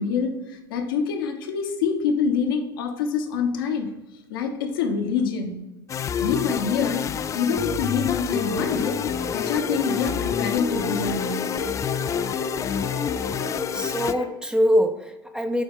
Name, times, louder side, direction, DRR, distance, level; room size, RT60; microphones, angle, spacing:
voice 1, 0.0-3.9 4.3-5.7 6.2-7.1 7.3-9.0 9.3-11.5 13.1-13.2, left 6 dB, 70° left, 4 dB, 1.0 m, -26 dB
sound 1, 5.9-14.1, left 8 dB, 25° left, 0.3 m, -28 dB
sound 2, 8.3-14.3, left 4 dB, 45° left, 1.0 m, -32 dB
voice 2, 13.7-15.6, equal, 5° right, 7 dB, 0.6 m, -23 dB
8.2 x 3.9 x 3.7 m, 1.1 s
figure-of-eight pair, 75°, 12 cm